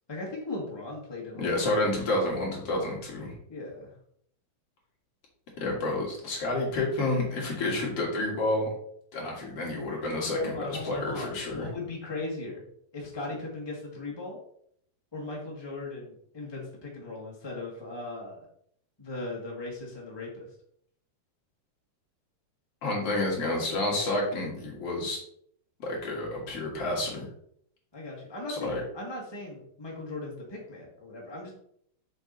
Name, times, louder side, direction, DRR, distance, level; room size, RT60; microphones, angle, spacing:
voice 1, 0.1-1.6 3.5-3.9 10.3-12.6 12.9-14.4 15.1-18.4 19.0-20.5 27.9-31.5, left 2 dB, 25° left, -3 dB, 0.5 m, -38 dB
voice 2, 1.3-3.4 5.6-8.7 9.1-11.7 22.8-25.2 25.8-27.2 28.5-28.8, left 2 dB, 45° left, -3 dB, 2.5 m, -29 dB
7.0 x 5.4 x 4.0 m, 0.67 s
omnidirectional pair, 4.2 m